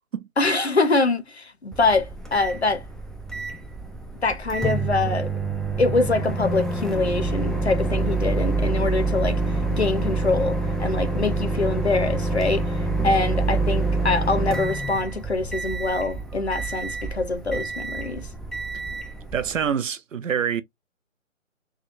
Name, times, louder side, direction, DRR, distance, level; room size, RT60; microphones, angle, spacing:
voice 1, 0.4-2.8 4.2-5.3 5.8-9.4 9.7-12.6 13.0-18.3, left 3 dB, 50° left, 0.6 m, -24 dB
Microwave oven, 1.7-19.7, right 3 dB, ahead, 0.3 m, -27 dB
voice 2, 19.3-20.6, right 8 dB, 70° right, 0.5 m, -26 dB
3.5 x 2.2 x 2.4 m
hypercardioid pair, 180°, 41 cm